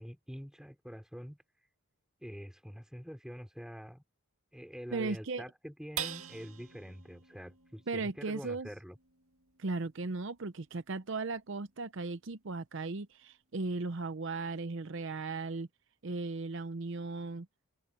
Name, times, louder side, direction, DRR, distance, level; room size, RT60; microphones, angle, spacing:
voice 1, 0.0-1.4 2.2-4.0 4.5-9.0, equal, 5° right, 4.0 m, -45 dB
voice 2, 4.9-5.4 7.9-8.7 9.6-15.7 16.0-17.5, right 3 dB, 55° right, 0.7 m, -36 dB
sound 1, 6.0-12.7 13.1-13.2 13.6-14.1, right 8 dB, 75° right, 2.0 m, -47 dB
head